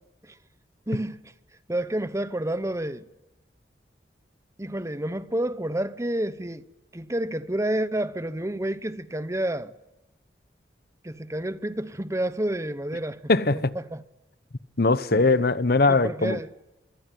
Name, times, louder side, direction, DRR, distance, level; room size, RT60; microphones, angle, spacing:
voice 1, 0.9-1.3 1.7-3.1 4.6-6.6 6.9-9.7 11.0-13.2 13.7-14.0 15.1-15.2 15.9-16.5, right 1 dB, 15° right, 1.0 m, -29 dB
voice 2, 13.3-13.7 14.8-16.4, left 3 dB, 60° left, 0.9 m, -21 dB
26.0 x 23.0 x 9.1 m
head